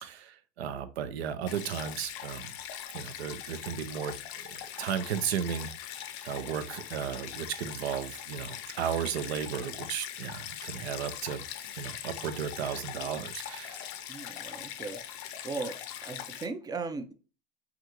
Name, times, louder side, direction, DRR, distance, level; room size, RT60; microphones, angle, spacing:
voice 1, 0.0-2.5 2.9-5.7 6.2-11.4 11.7-13.8, right 8 dB, 75° right, 0.5 m, -35 dB
Stream, 1.5-16.5, left 10 dB, 50° left, 0.5 m, -41 dB
voice 2, 14.1-15.0 15.4-17.1, right 4 dB, 15° right, 0.3 m, -37 dB
3.4 x 2.5 x 2.9 m
hypercardioid pair, 85°, 32 cm